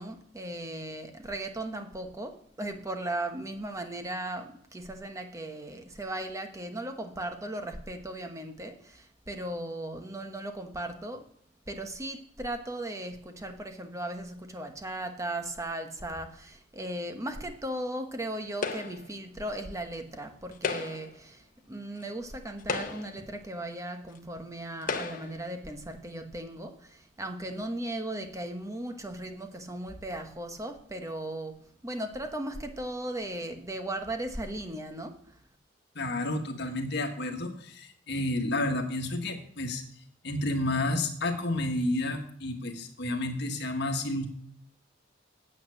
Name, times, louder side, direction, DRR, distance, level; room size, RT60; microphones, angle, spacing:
voice 1, 0.0-11.3 11.7-35.4, right 1 dB, 15° right, 6 dB, 1.1 m, -37 dB
sound 1, 18.6-19.1 20.5-21.2 22.0-22.1 22.6-23.3 24.1-24.2 24.8-25.4, left 4 dB, 45° left, 1.1 m, -34 dB
voice 2, 35.9-39.8 40.2-44.3, left 1 dB, 65° left, 4 dB, 1.6 m, -30 dB
9.2 x 8.2 x 6.4 m, 0.63 s
head